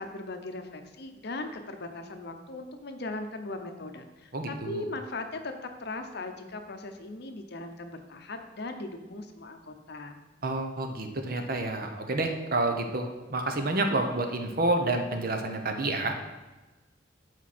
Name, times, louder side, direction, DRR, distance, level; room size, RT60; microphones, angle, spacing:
voice 1, 0.0-5.5 5.8-10.2, left 2 dB, 60° left, 6 dB, 0.8 m, -39 dB
voice 2, 4.3-4.8 10.4-16.1, right 2 dB, 50° right, 5 dB, 0.9 m, -29 dB
12.5 x 4.5 x 4.3 m, 1.2 s
head